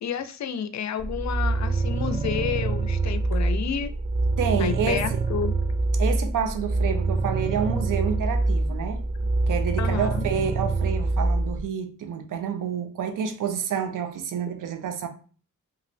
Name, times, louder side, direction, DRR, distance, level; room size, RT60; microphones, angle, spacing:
voice 1, 0.0-3.9 4.6-5.6 9.8-10.3, left 8 dB, 60° left, 0.4 m, -30 dB
sound 1, 1.0-11.6, right 3 dB, 25° right, 0.4 m, -25 dB
voice 2, 4.4-5.2 6.0-9.0 9.5-15.1, right 7 dB, 80° right, 0.5 m, -28 dB
2.9 x 2.6 x 2.6 m
cardioid pair, 50°, 31 cm